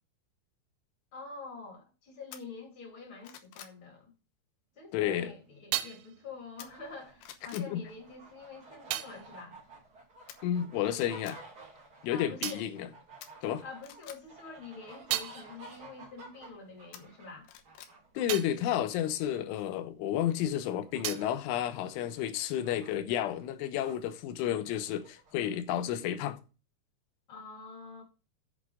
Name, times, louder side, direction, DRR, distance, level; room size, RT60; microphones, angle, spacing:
voice 1, 1.1-4.1 4.7-9.6 12.1-12.7 13.6-17.5 27.3-28.0, left 4 dB, 30° left, 3.0 m, -46 dB
sound 1, 2.3-2.4 2.9-3.8 6.6-6.9 7.2-7.7 10.3-10.4 10.9-11.4 13.2-14.2 16.9-17.9 18.3-18.4, left 10 dB, 70° left, 2.7 m, -49 dB
voice 2, 4.9-5.3 7.5-7.8 10.4-11.4 12.0-12.9 13.4-13.6 18.1-26.4, left 11 dB, 85° left, 3.4 m, -31 dB
sound 2, 4.9-10.9 11.2-13.9 14.3-20.3 20.5-22.6, right 14 dB, 80° right, 2.9 m, -42 dB
sound 3, 6.6-24.0 24.4-25.5 25.8-25.9, right 2 dB, 40° right, 1.4 m, -54 dB
8.4 x 7.5 x 4.8 m
omnidirectional pair, 5.5 m